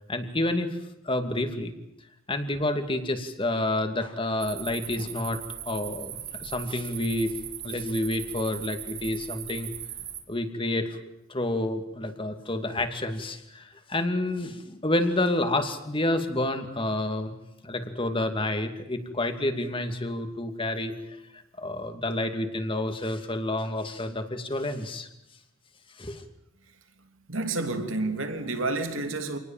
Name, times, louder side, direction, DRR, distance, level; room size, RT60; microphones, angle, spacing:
voice 1, 0.1-0.8 1.0-1.7 2.3-5.4 5.7-7.3 7.6-9.7 10.3-11.0 11.3-17.3 17.6-20.9 21.3-25.1 26.0-26.3, left 1 dB, 25° left, 2.5 m, -29 dB
sound 1, 4.4-10.2, right 10 dB, 60° right, 3.5 m, -39 dB
voice 2, 27.3-29.4, right 2 dB, 80° right, 3.1 m, -29 dB
27.0 x 19.5 x 7.4 m
head